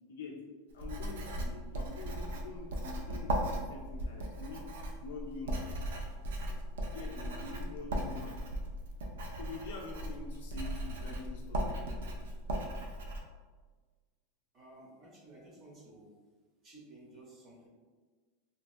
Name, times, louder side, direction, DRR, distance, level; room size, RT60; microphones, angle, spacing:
voice 1, 0.1-0.4 0.7-4.7 5.0-5.8 6.9-8.4 9.4-11.8, left 4 dB, 85° left, -1 dB, 0.4 m, -45 dB
Writing, 0.8-13.2, right 1 dB, 90° right, 0.5 m, -37 dB
voice 2, 14.5-16.1 16.6-17.7, right 2 dB, 25° right, -4 dB, 0.7 m, -54 dB
2.8 x 2.3 x 2.5 m, 1.4 s
supercardioid pair, 155°, 0 cm